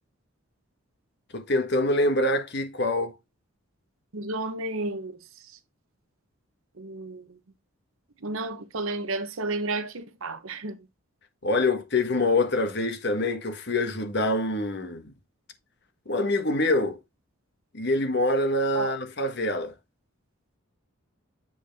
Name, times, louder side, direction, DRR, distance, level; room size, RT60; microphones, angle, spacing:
voice 1, 1.3-3.1 11.4-15.1 16.1-17.0 17.7-19.7, left 2 dB, 50° left, 1.4 m, -25 dB
voice 2, 4.1-5.2 6.8-7.4 8.2-10.8 18.7-18.9, right 2 dB, 75° right, 1.0 m, -32 dB
8.1 x 4.5 x 3.5 m
head